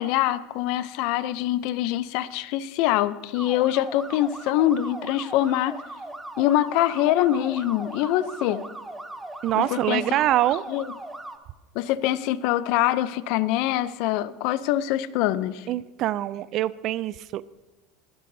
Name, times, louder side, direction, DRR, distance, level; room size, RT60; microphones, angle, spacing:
voice 1, 0.0-5.8 6.4-8.7 9.6-10.1 10.7-10.8 11.7-15.7, left 13 dB, 65° left, 15 dB, 0.5 m, -24 dB
sound 1, 3.3-11.4, right 2 dB, 10° right, 0.8 m, -38 dB
voice 2, 9.4-10.6 15.7-17.5, right 13 dB, 45° right, 19 dB, 0.3 m, -25 dB
20.0 x 11.5 x 2.7 m, 1.1 s
supercardioid pair, 140°, 0 cm